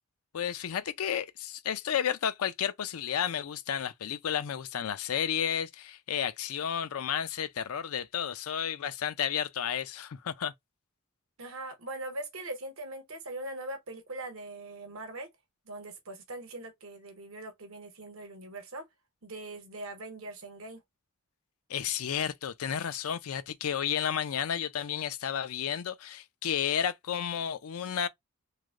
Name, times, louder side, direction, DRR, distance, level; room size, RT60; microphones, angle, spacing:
voice 1, 0.3-10.5 21.7-28.1, left 8 dB, 80° left, 0.4 m, -32 dB
voice 2, 11.4-15.3 15.7-18.9 19.2-20.8, right 2 dB, 65° right, 1.0 m, -41 dB
3.2 x 2.5 x 2.3 m
head